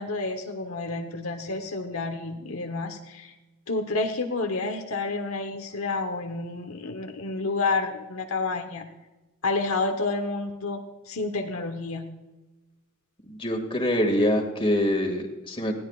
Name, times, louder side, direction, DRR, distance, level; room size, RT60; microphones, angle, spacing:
voice 1, 0.0-3.3 3.7-8.8 9.4-10.8 11.1-12.1, left 3 dB, 70° left, 4 dB, 1.2 m, -29 dB
voice 2, 13.2-15.7, left 1 dB, 25° left, 3 dB, 2.3 m, -25 dB
20.0 x 16.5 x 2.5 m, 1.1 s
head